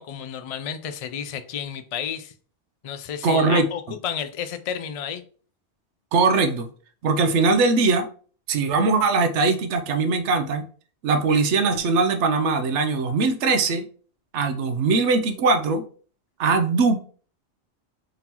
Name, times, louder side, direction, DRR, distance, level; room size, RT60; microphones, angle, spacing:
voice 1, 0.0-2.3 2.8-5.2, left 8 dB, 65° left, 9 dB, 0.3 m, -31 dB
voice 2, 3.2-3.7 6.1-6.7 7.0-8.1 8.5-10.7 11.0-13.8 14.3-15.8 16.4-17.1, right 4 dB, 90° right, 8 dB, 1.0 m, -21 dB
3.9 x 3.6 x 2.9 m, 0.41 s
omnidirectional pair, 1.2 m